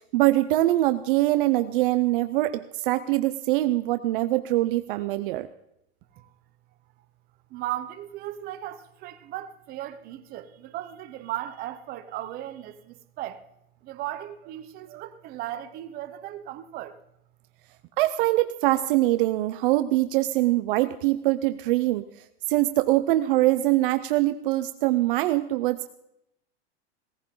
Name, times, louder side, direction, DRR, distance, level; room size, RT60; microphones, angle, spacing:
voice 1, 0.0-5.5 18.0-22.0 22.5-25.9, right 17 dB, 55° right, 0.7 m, -23 dB
voice 2, 7.5-13.4 13.8-17.0, right 13 dB, 25° right, 1.0 m, -36 dB
17.5 x 15.5 x 3.8 m
supercardioid pair, 165°, 33 cm